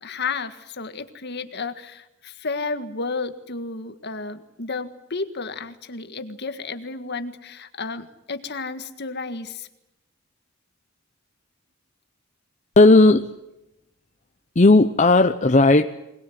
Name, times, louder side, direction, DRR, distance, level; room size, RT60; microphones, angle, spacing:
voice 1, 0.0-9.7, left 4 dB, 55° left, 9 dB, 1.7 m, -32 dB
voice 2, 12.8-13.3 14.6-15.9, left 2 dB, 35° left, 7 dB, 0.8 m, -14 dB
22.5 x 20.5 x 9.3 m, 0.91 s
head